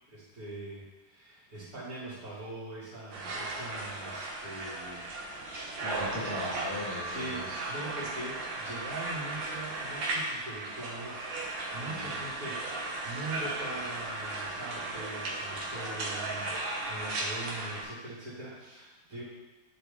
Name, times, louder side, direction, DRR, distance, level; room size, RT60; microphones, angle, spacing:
voice 1, 0.1-5.1 5.5-5.6 7.1-11.3 11.7-19.2, right 2 dB, 55° right, -10 dB, 3.4 m, -42 dB
sound 1, 3.1-17.8, right 2 dB, 90° right, 1.7 m, -36 dB
voice 2, 5.8-7.6 11.8-12.2, equal, 15° left, -7 dB, 1.2 m, -37 dB
11.0 x 4.1 x 3.5 m, 1.1 s
omnidirectional pair, 2.0 m